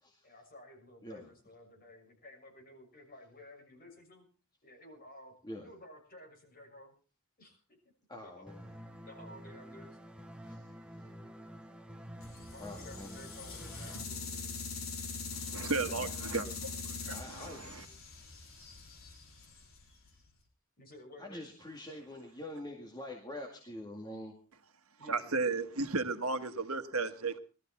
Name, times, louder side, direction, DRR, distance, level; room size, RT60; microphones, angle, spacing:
voice 1, 0.2-4.3 4.6-5.3 5.6-6.9 7.4-7.8 8.2-10.0 12.3-14.6 20.8-21.5 24.2-24.3 25.0-25.6, left 1 dB, 45° left, 1 dB, 6.5 m, -54 dB
voice 2, 8.1-8.7 10.4-10.6 10.9-11.1 12.6-13.2 15.6-16.1 17.1-17.7 21.2-24.4, left 1 dB, 20° left, 1 dB, 2.1 m, -45 dB
sound 1, 8.5-14.0, equal, 5° right, 1.0 m, -49 dB
sound 2, 12.2-20.3, left 4 dB, 70° left, 3.6 m, -43 dB
voice 3, 15.3-17.8 25.1-27.4, right 3 dB, 85° right, 8 dB, 1.4 m, -35 dB
20.0 x 13.5 x 4.3 m, 0.36 s
head